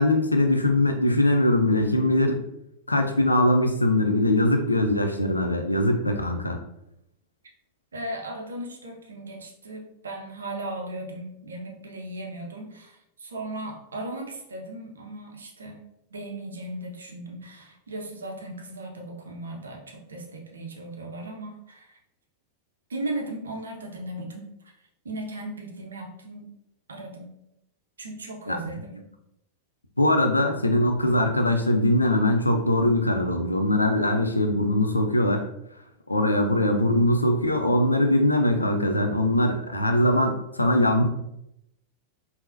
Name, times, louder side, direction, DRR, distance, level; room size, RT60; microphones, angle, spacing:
voice 1, 0.0-2.4 2.9-6.6 28.5-28.6 30.0-35.4 36.1-41.0, left 1 dB, 85° left, 4 dB, 0.4 m, -22 dB
voice 2, 7.9-15.8 16.1-22.0 22.9-24.7 25.0-26.5 26.9-27.4 28.0-29.1, right 1 dB, 70° right, 2 dB, 0.5 m, -37 dB
3.7 x 2.0 x 2.5 m, 0.81 s
figure-of-eight pair, 90°, 0 cm